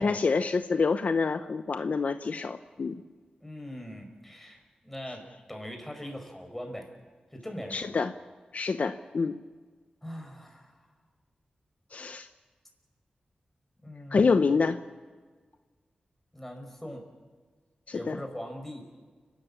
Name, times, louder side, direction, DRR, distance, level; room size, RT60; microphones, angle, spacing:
voice 1, 0.0-3.0 7.7-8.1 8.5-9.4 11.9-12.3 14.1-14.8 17.9-18.2, left 4 dB, 60° left, 10 dB, 0.8 m, -27 dB
voice 2, 3.4-5.2 5.5-6.9 7.3-8.0 10.0-10.8 13.8-14.6 16.3-17.0 17.9-18.8, equal, 10° left, 3 dB, 5.1 m, -41 dB
29.5 x 13.0 x 8.6 m, 1.5 s
wide cardioid pair, 85°, 3 cm